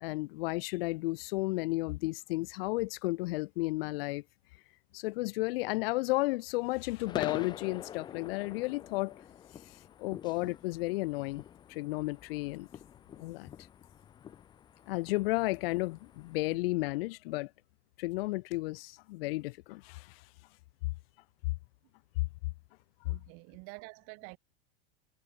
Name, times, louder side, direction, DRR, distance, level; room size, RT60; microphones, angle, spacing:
voice 1, 0.0-4.2 4.9-9.1 10.0-11.4 11.7-12.7 13.2-13.5 14.9-17.5 18.0-20.1, left 22 dB, 70° left, 0.6 m, -33 dB
sound 1, 7.0-16.5, left 9 dB, 15° left, 0.4 m, -46 dB
voice 2, 23.0-24.4, right 34 dB, 50° right, 1.5 m, -48 dB
supercardioid pair, 150°, 30 cm